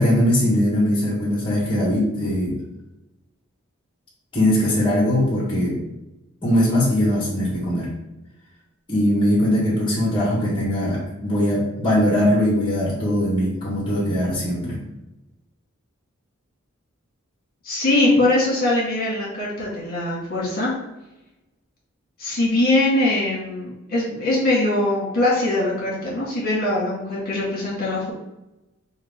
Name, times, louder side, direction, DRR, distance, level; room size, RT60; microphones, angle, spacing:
voice 1, 0.0-2.5 4.3-5.8 6.4-7.9 8.9-14.8, equal, 25° left, -5 dB, 1.5 m, -20 dB
voice 2, 17.6-20.7 22.2-28.1, left 2 dB, 45° left, -5 dB, 1.6 m, -22 dB
5.6 x 2.6 x 3.6 m, 0.95 s
head